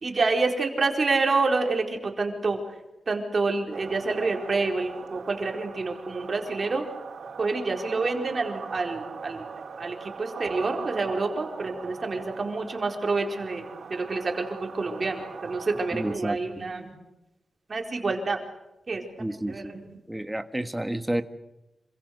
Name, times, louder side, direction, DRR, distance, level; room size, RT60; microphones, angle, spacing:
voice 1, 0.0-2.6 3.1-6.8 7.4-9.5 9.8-16.9 17.7-18.4 18.9-20.0, right 3 dB, 40° right, 3 dB, 4.5 m, -28 dB
sound 1, 3.7-16.2, right 5 dB, 70° right, 4.4 m, -40 dB
voice 2, 15.9-16.4 19.2-19.7 20.1-21.2, right 1 dB, 10° right, 9 dB, 1.4 m, -30 dB
27.5 x 25.5 x 6.7 m, 0.97 s
wide cardioid pair, 155°, 0 cm